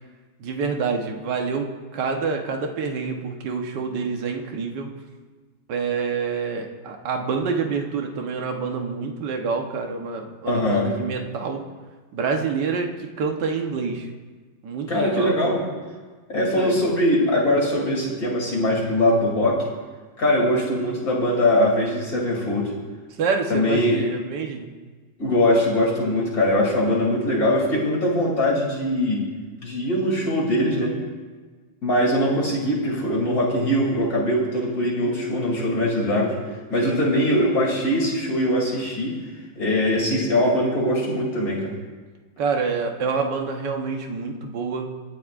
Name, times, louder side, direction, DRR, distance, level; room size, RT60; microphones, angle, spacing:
voice 1, 0.4-4.9 5.7-11.6 12.1-12.9 13.2-14.1 14.6-15.3 16.3-16.9 23.2-24.7 36.8-37.0 42.4-44.9, right 5 dB, 60° right, 3 dB, 1.7 m, -27 dB
voice 2, 10.5-10.9 14.9-15.6 16.3-19.6 20.2-22.7 23.5-24.0 25.2-29.2 29.6-31.0 31.8-36.4 36.7-39.2 39.6-41.7, left 1 dB, 40° left, -3 dB, 3.4 m, -21 dB
24.0 x 10.5 x 2.5 m, 1.4 s
omnidirectional pair, 2.4 m